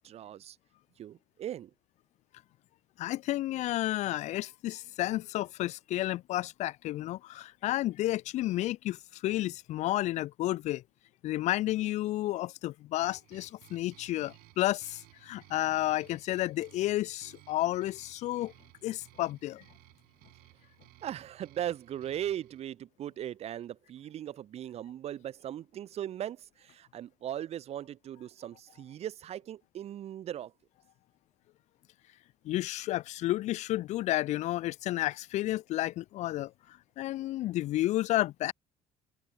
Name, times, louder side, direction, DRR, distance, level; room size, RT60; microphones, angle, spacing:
voice 1, 0.0-0.6 1.0-1.7 21.0-30.5, right 11 dB, 35° right, 0.5 m, -38 dB
voice 2, 3.0-10.8 11.2-18.5 18.8-19.6 32.4-36.5 37.0-38.5, left 15 dB, 40° left, 0.4 m, -31 dB
sound 1, 13.0-22.6, right 21 dB, 60° right, 6.1 m, -59 dB
figure-of-eight pair, 50°, 18 cm